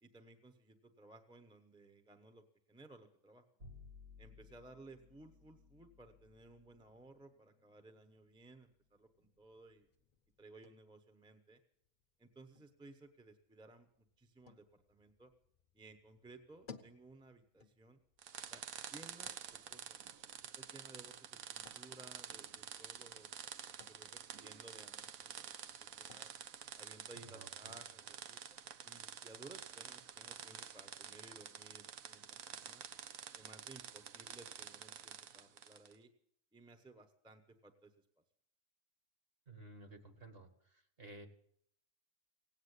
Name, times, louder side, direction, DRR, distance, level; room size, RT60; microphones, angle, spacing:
voice 1, 0.0-3.4 4.2-9.9 10.4-11.6 12.2-15.3 15.7-18.0 18.5-18.6 18.9-20.0 20.4-23.3 23.9-26.3 26.8-28.4 28.8-32.8 33.4-36.1 36.5-37.9, right 2 dB, 5° right, 8 dB, 0.9 m, -59 dB
Bowed string instrument, 3.6-10.1, left 4 dB, 70° right, 2.8 m, -62 dB
sound 1, 9.2-28.7, left 5 dB, 35° left, 0.9 m, -65 dB
sound 2, 18.2-36.0, right 8 dB, 85° right, 1.2 m, -49 dB
voice 2, 27.2-27.8 39.5-41.3, right 2 dB, 45° right, 6 dB, 1.8 m, -55 dB
17.0 x 8.9 x 8.2 m, 0.68 s
omnidirectional pair, 1.4 m